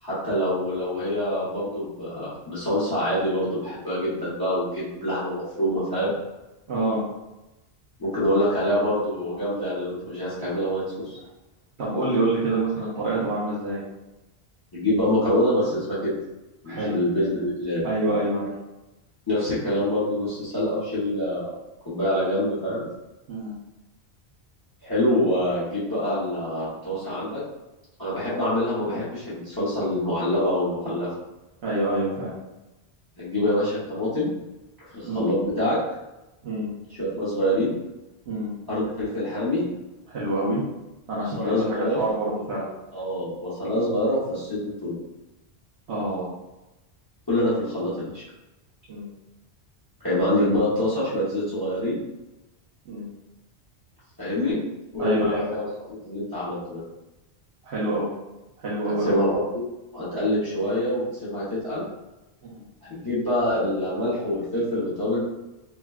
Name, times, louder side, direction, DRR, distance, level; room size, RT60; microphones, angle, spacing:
voice 1, 0.0-6.1 8.0-10.8 11.1-11.2 14.7-16.1 16.6-17.8 19.3-21.5 21.8-22.9 24.8-27.4 28.0-31.1 33.2-34.3 34.9-35.8 37.0-37.7 38.7-39.7 41.4-42.0 42.9-45.0 47.3-48.2 50.0-52.0 54.2-54.6 54.9-56.8 58.8-59.6 59.9-61.8 62.8-65.2, left 1 dB, 25° left, -9 dB, 0.8 m, -25 dB
voice 2, 6.7-7.0 11.8-13.8 16.7-17.0 17.8-18.5 23.3-23.5 31.6-32.3 35.0-35.3 36.4-36.7 38.3-38.5 40.1-40.6 41.1-42.6 45.9-46.3 48.9-49.1 52.9-53.1 55.0-55.4 57.6-58.1 58.6-59.2 62.4-62.6, right 2 dB, 75° right, -7 dB, 1.0 m, -26 dB
3.3 x 2.2 x 2.3 m, 1.0 s
omnidirectional pair, 1.1 m